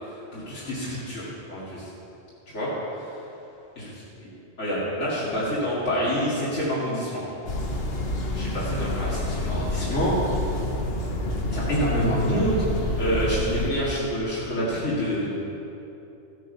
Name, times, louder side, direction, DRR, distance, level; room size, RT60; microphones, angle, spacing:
voice 1, 0.3-1.9 2.5-3.1 3.8-3.9 4.6-7.2 8.3-10.4 11.5-12.6 12.9-15.3, equal, 75° left, -9 dB, 2.8 m, -27 dB
sound 1, 7.5-13.7, left 1 dB, 55° left, 1.3 m, -28 dB
14.0 x 9.3 x 5.6 m, 2.9 s
omnidirectional pair, 1.2 m